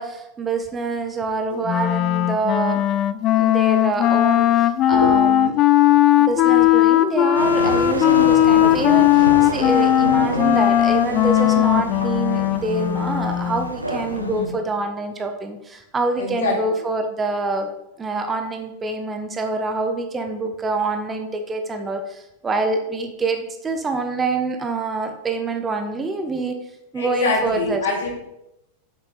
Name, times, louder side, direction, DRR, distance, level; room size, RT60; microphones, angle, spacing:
voice 1, 0.0-2.8 3.3-5.5 6.2-17.7 18.0-26.6 26.9-27.9, right 3 dB, 15° right, 6 dB, 1.0 m, -26 dB
Wind instrument woodwind instrument, 1.7-13.7, left 12 dB, 35° left, 0.4 m, -17 dB
sound 1, 7.3-14.4, right 1 dB, 85° right, 1.1 m, -29 dB
voice 2, 14.2-14.6 16.2-16.5 27.0-28.1, left 3 dB, 65° left, -2 dB, 3.0 m, -24 dB
8.0 x 7.0 x 4.1 m, 0.88 s
figure-of-eight pair, 90°, 0 cm